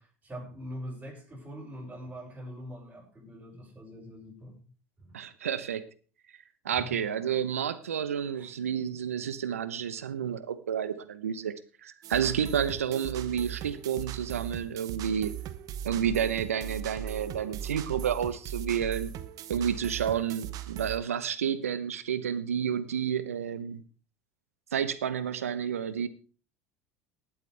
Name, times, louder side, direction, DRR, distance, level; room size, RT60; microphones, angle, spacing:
voice 1, 0.0-4.6 5.0-5.2 6.6-6.9 8.4-8.5, equal, 15° right, -5 dB, 7.2 m, -43 dB
voice 2, 5.1-5.8 6.6-11.5 11.8-15.3 15.8-19.1 19.5-23.8 24.7-26.1, right 8 dB, 90° right, 14 dB, 0.9 m, -30 dB
sound 1, 12.0-21.0, right 10 dB, 55° right, 1.1 m, -39 dB
19.5 x 8.4 x 3.4 m, 0.37 s
hypercardioid pair, 75°, 7 cm